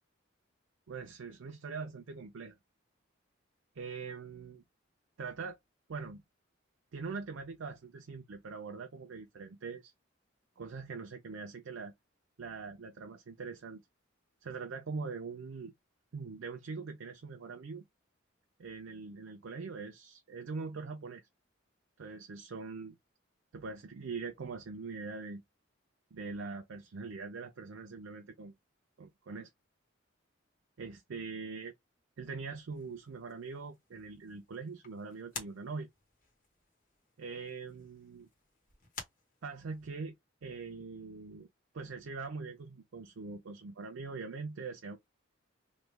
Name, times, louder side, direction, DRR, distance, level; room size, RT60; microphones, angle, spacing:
voice 1, 0.9-2.6 3.8-4.6 5.2-5.6 5.9-6.2 6.9-9.9 10.6-11.9 12.4-13.8 14.4-15.7 16.1-17.9 18.6-21.3 22.0-23.0 23.5-25.4 26.1-28.5 29.0-29.5 30.8-31.7 32.2-35.9 37.2-38.3 39.4-40.1 40.4-41.5 41.7-45.0, right 4 dB, 75° right, 0.5 m, -42 dB
sound 1, 32.7-39.9, left 4 dB, 40° left, 1.1 m, -52 dB
3.1 x 2.2 x 3.2 m
head